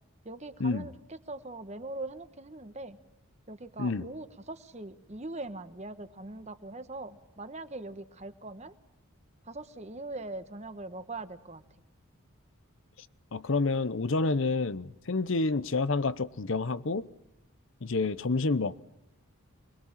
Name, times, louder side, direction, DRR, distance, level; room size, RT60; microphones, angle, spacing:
voice 1, 0.2-3.0 3.5-8.7 9.4-11.6, right 2 dB, 30° right, 1.3 m, -41 dB
voice 2, 13.3-17.1 17.8-18.9, left 3 dB, 60° left, 0.8 m, -29 dB
25.0 x 21.5 x 7.4 m
head